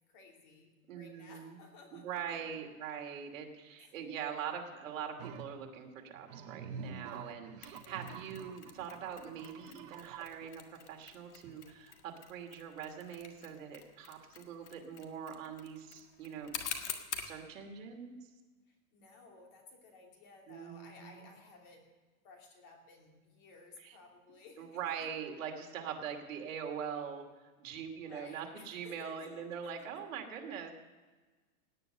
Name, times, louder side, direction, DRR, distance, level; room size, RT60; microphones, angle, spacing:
voice 1, 0.0-2.5 3.7-4.0 7.7-8.2 18.7-21.9 22.2-25.1 28.0-30.0, left 3 dB, 35° left, 2 dB, 2.6 m, -57 dB
voice 2, 0.9-1.6 1.9-18.1 20.5-21.1 23.8-23.9 24.6-27.2 27.6-30.7, right 7 dB, 65° right, 3 dB, 2.7 m, -43 dB
sound 1, 5.2-5.5 6.2-10.5, right 6 dB, 30° right, 0.7 m, -47 dB
Mechanisms, 7.6-17.4, left 8 dB, 50° left, 1.7 m, -47 dB
17.5 x 9.5 x 6.6 m, 1.3 s
supercardioid pair, 180°, 43 cm